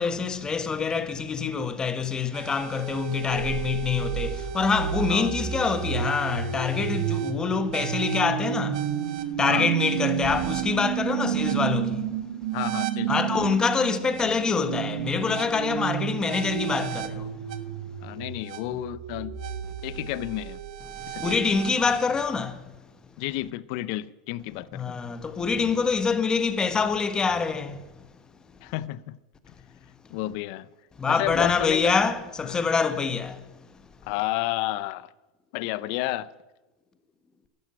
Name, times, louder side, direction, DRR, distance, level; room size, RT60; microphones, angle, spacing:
voice 1, 0.0-8.9 9.4-12.1 13.1-17.3 20.9-22.6 24.7-27.9 31.0-33.6, left 5 dB, 15° left, 1.3 m, -26 dB
sound 1, 2.3-22.1, right 9 dB, 70° right, 1.4 m, -31 dB
voice 2, 12.5-13.3 18.0-19.3 19.8-20.6 21.1-21.4 23.2-25.0 28.6-29.2 30.1-30.7 31.1-31.9 32.4-32.6 34.0-35.1 35.5-36.3, left 16 dB, 55° left, 0.6 m, -31 dB
12.0 x 12.0 x 8.8 m
supercardioid pair, 130°, 4 cm